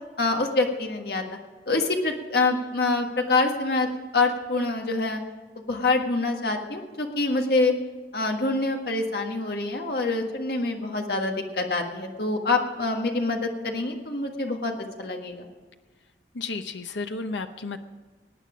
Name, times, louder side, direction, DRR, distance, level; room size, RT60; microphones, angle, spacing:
voice 1, 0.2-1.2 1.7-3.9 4.1-5.2 5.6-7.7 8.1-14.7 15.0-15.5, left 3 dB, 60° left, 3 dB, 1.6 m, -25 dB
voice 2, 16.3-17.8, left 3 dB, 90° left, 8 dB, 0.8 m, -32 dB
18.5 x 9.4 x 5.1 m, 1.4 s
head